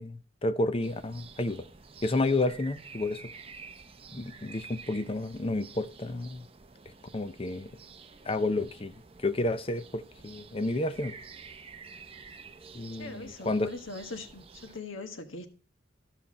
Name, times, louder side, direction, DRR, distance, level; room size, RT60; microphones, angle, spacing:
voice 1, 0.0-1.6 2.0-3.2 4.1-6.5 7.1-7.7 8.2-8.9 9.2-11.2 12.7-13.7, left 2 dB, 30° left, 0.6 m, -30 dB
sound 1, 0.8-14.8, right 5 dB, 30° right, 0.7 m, -50 dB
voice 2, 13.0-15.5, left 3 dB, 90° left, 1.3 m, -41 dB
13.5 x 5.8 x 4.2 m
head